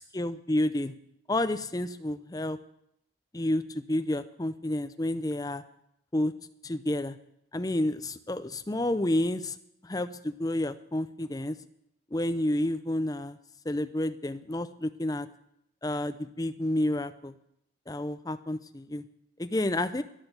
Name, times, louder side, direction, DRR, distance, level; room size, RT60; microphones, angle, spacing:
voice 1, 0.1-0.9 1.3-2.6 3.3-5.6 6.1-6.3 6.6-7.2 7.5-9.6 9.8-11.6 12.1-13.4 13.6-15.3 15.8-17.3 17.9-19.0 19.4-20.0, left 1 dB, 20° left, 11 dB, 0.6 m, -30 dB
11.5 x 11.0 x 8.1 m, 0.76 s
head